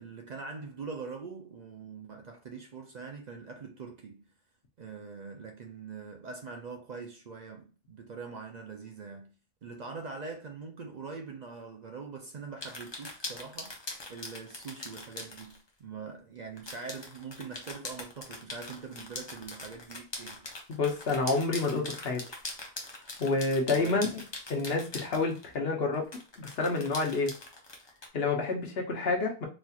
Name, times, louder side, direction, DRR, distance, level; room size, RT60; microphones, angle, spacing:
voice 1, 0.0-4.3 4.8-9.4 9.6-13.7 14.1-20.5 23.7-24.0, right 5 dB, 50° right, 0.6 m, -43 dB
sound 1, 12.6-15.6 16.6-25.5 26.1-28.1, left 2 dB, 30° left, 0.7 m, -42 dB
voice 2, 20.7-22.2 23.2-24.2 24.5-26.1 26.4-27.4 28.1-29.5, left 3 dB, 70° left, 1.1 m, -29 dB
4.1 x 2.8 x 2.3 m
omnidirectional pair, 1.1 m